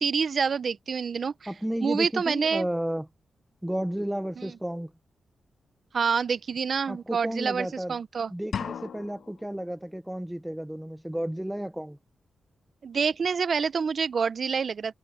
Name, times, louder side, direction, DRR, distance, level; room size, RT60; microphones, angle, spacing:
voice 1, 0.0-1.5 1.8-2.7 4.4-4.5 5.9-8.3 12.8-14.9, right 5 dB, 50° right, 0.6 m, -27 dB
voice 2, 1.5-3.1 3.6-4.9 6.9-8.0 8.3-12.0, right 1 dB, 5° right, 0.6 m, -32 dB
sound 1, 8.5-9.5, left 7 dB, 70° left, 0.5 m, -35 dB
wide cardioid pair, 140°, 0 cm